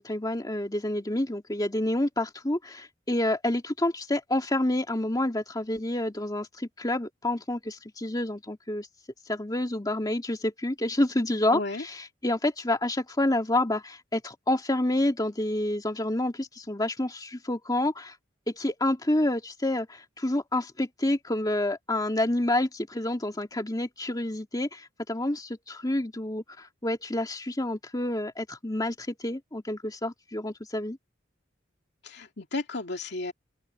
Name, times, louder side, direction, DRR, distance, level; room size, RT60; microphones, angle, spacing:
voice 1, 0.0-8.9 9.3-18.2 18.5-31.0, left 1 dB, 20° left, 2.4 m, -28 dB
voice 2, 11.5-11.8 32.0-33.3, left 2 dB, 60° left, 2.5 m, -33 dB
head